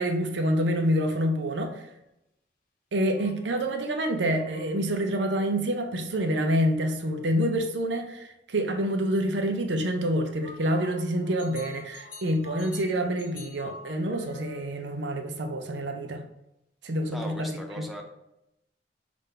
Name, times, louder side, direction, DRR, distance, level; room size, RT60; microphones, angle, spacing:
voice 1, 0.0-1.8 2.9-16.3 16.8-17.5, equal, 70° right, 5 dB, 0.6 m, -27 dB
sound 1, 1.2-2.0 3.1-5.8 10.4-14.9, left 3 dB, 50° left, 0.7 m, -48 dB
voice 2, 17.1-18.0, right 1 dB, ahead, 0 dB, 0.6 m, -38 dB
5.5 x 2.5 x 3.8 m, 0.84 s
head